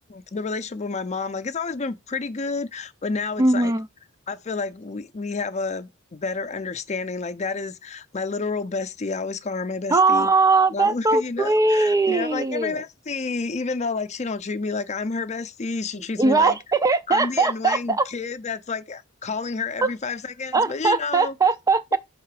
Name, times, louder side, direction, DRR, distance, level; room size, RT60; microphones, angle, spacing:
voice 1, 0.1-3.7 4.3-10.3 10.7-16.6 17.1-21.3 21.9-22.0, left 4 dB, 35° left, 0.5 m, -30 dB
voice 2, 3.4-3.9 9.9-12.8 16.2-18.1 19.8-19.9 20.5-22.0, right 3 dB, 15° right, 0.4 m, -20 dB
5.8 x 3.7 x 4.7 m
head